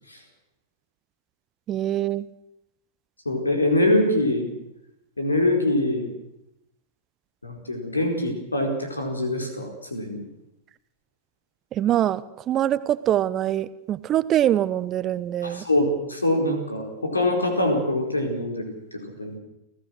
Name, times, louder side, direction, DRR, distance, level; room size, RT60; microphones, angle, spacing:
voice 1, 1.7-2.3 11.7-15.7, right 12 dB, 30° right, 17 dB, 0.8 m, -24 dB
voice 2, 3.2-4.5 5.2-6.1 7.4-10.3 15.4-19.4, left 1 dB, 80° left, 5 dB, 4.3 m, -24 dB
29.5 x 15.0 x 6.4 m, 0.85 s
figure-of-eight pair, 90°, 0 cm